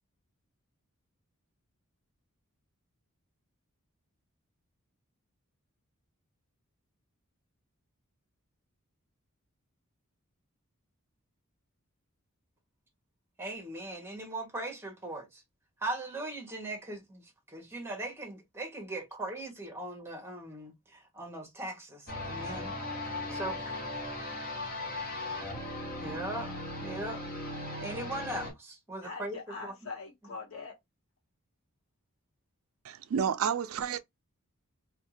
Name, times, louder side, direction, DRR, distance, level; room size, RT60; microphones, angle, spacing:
voice 1, 13.4-15.4 15.8-22.7 23.3-23.6 26.0-26.5 26.8-27.2 27.8-29.7, right 2 dB, 10° right, 0.9 m, -39 dB
sound 1, 22.1-28.5, left 2 dB, 45° left, 1.0 m, -38 dB
voice 2, 23.1-23.6 29.0-30.8, left 4 dB, 70° left, 1.1 m, -43 dB
voice 3, 32.8-34.0, right 7 dB, 70° right, 0.4 m, -30 dB
2.5 x 2.3 x 2.8 m
head